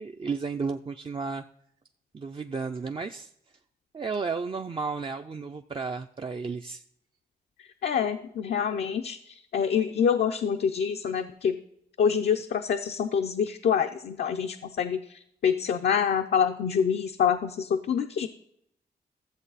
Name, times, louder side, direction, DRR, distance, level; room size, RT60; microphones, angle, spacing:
voice 1, 0.0-1.4 2.1-3.3 3.9-6.8, right 4 dB, 30° right, 5 dB, 0.5 m, -33 dB
voice 2, 7.8-11.6 12.0-18.3, left 7 dB, 75° left, 5 dB, 0.6 m, -26 dB
13.5 x 7.4 x 4.1 m, 0.73 s
cardioid pair, 75°, 17 cm